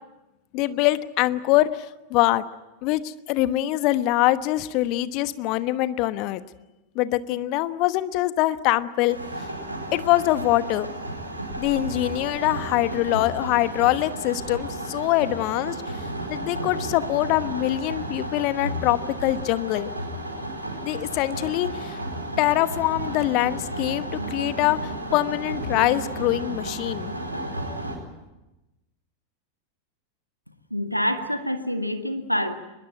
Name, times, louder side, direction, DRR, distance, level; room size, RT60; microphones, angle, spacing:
voice 1, 0.5-2.4 2.8-6.4 6.9-9.2 9.9-10.9 11.6-16.0 16.3-19.9 20.8-22.0 22.4-27.1, left 16 dB, 40° left, 14 dB, 1.1 m, -24 dB
sound 1, 9.1-27.9, right 1 dB, 80° right, 4.7 m, -33 dB
voice 2, 30.7-32.5, equal, 90° left, 7 dB, 1.8 m, -26 dB
23.0 x 21.0 x 9.1 m, 1.0 s
figure-of-eight pair, 90°, 0 cm